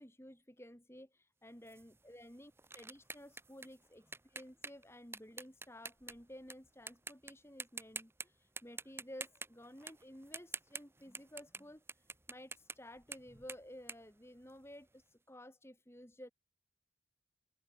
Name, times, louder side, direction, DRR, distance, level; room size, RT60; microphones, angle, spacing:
voice 1, 0.0-16.3, equal, 15° left, 6.3 m, -54 dB
sound 1, 1.7-6.5 6.9-7.3 7.6-8.3 8.6-14.9, right 4 dB, 15° right, 3.1 m, -47 dB
open air
head